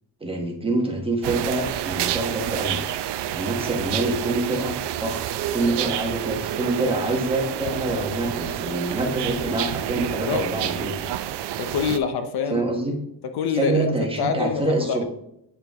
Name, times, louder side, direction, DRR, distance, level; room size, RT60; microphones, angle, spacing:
voice 1, 0.2-2.8 3.3-4.7 5.0-5.2 5.5-11.0 12.5-13.0 13.5-15.0, right 2 dB, 10° right, 1 dB, 1.1 m, -26 dB
sound 1, 1.2-12.0, right 11 dB, 70° right, 0.6 m, -29 dB
voice 2, 11.6-12.6 13.2-15.0, left 6 dB, 60° left, 8 dB, 0.7 m, -26 dB
9.1 x 4.8 x 3.4 m, 0.80 s
cardioid pair, 160°, 43 cm